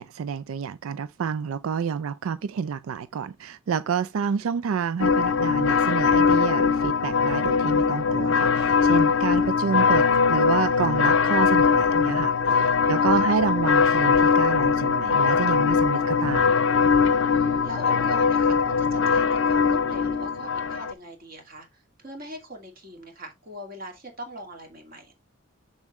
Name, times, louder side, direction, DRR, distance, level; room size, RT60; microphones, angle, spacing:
voice 1, 0.0-16.5, right 6 dB, 85° right, 0.4 m, -29 dB
sound 1, 5.0-20.9, left 5 dB, 65° left, 0.6 m, -21 dB
voice 2, 12.8-13.3 17.3-25.1, equal, 45° right, 2.4 m, -41 dB
7.1 x 6.3 x 3.2 m
head